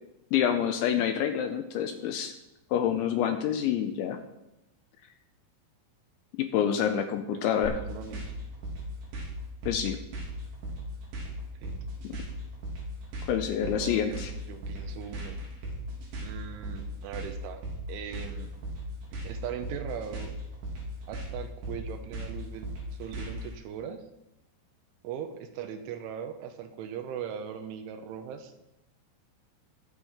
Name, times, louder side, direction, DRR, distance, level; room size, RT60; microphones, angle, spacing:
voice 1, 0.3-2.3 2.7-4.2 6.3-7.8 9.7-10.0 12.0-12.2 13.3-14.3, left 9 dB, 85° left, 6 dB, 2.8 m, -27 dB
voice 2, 6.8-8.3 11.6-11.8 13.4-15.4 16.2-18.5 19.2-20.3 21.1-22.7 23.0-24.0 25.0-28.6, right 8 dB, 80° right, 7 dB, 3.1 m, -40 dB
sound 1, 7.6-23.5, right 1 dB, 60° right, 5.8 m, -37 dB
21.5 x 7.4 x 5.0 m, 0.91 s
omnidirectional pair, 5.9 m